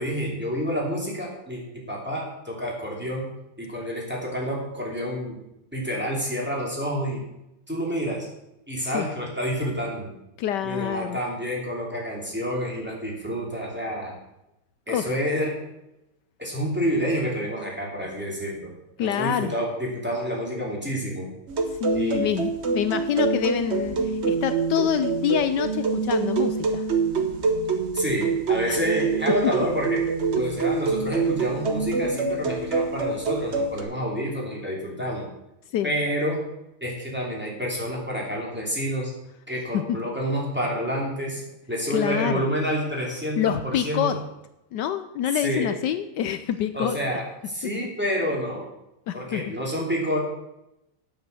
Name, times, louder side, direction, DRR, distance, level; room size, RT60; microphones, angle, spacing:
voice 1, 0.0-1.6 1.9-3.2 3.6-5.4 5.7-7.2 7.7-8.3 8.7-10.1 10.6-14.1 14.9-15.5 16.4-18.7 19.0-21.3 21.9-22.4 27.9-30.0 30.4-35.3 35.8-36.4 36.8-39.1 39.5-41.4 41.7-44.2 45.3-45.7 46.7-48.6 49.1-50.2, equal, 5° right, -2 dB, 2.8 m, -28 dB
voice 2, 10.4-11.2 14.9-15.1 19.0-19.5 21.8-26.9 28.7-28.8 35.7-35.9 39.7-39.8 41.9-42.4 43.4-44.2 44.7-47.0 49.1-49.4, left 10 dB, 75° left, 11 dB, 1.0 m, -26 dB
sound 1, 21.5-33.8, right 4 dB, 45° right, 1.0 m, -25 dB
9.0 x 8.0 x 6.8 m, 0.87 s
omnidirectional pair, 2.3 m